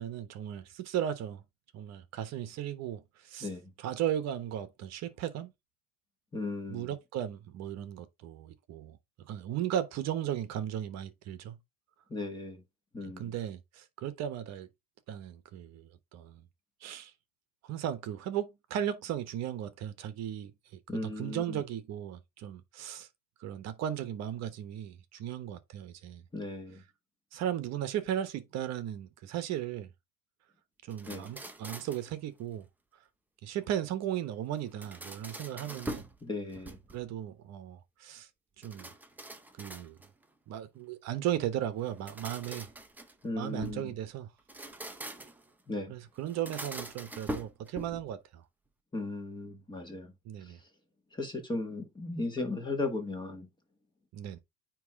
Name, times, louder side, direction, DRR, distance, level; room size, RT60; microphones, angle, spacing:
voice 1, 0.0-1.4 1.7-3.5 3.8-5.5 6.7-9.0 9.3-11.6 13.2-14.7 15.1-16.4 16.8-17.1 17.7-20.5 20.9-23.1 23.4-26.2 27.3-29.9 30.9-32.7 33.4-36.1 36.9-38.3 38.6-38.9 39.6-40.0 40.5-42.7 43.3-44.3 45.9-48.4 50.2-50.6 54.1-54.4, right 10 dB, 40° right, 1.2 m, -36 dB
voice 2, 6.3-6.9 12.1-12.6 12.9-13.3 20.9-21.6 26.3-26.8 31.1-31.3 36.2-36.8 43.2-43.9 45.7-45.9 48.9-50.1 51.1-53.5, left 2 dB, 10° left, 1.9 m, -36 dB
sound 1, 30.9-32.1 34.5-36.2 36.5-37.1 38.6-40.2 41.8-43.9 44.4-45.5 46.3-48.1, right 1 dB, 5° right, 0.7 m, -43 dB
9.2 x 3.2 x 3.7 m
supercardioid pair, 130°, 40 cm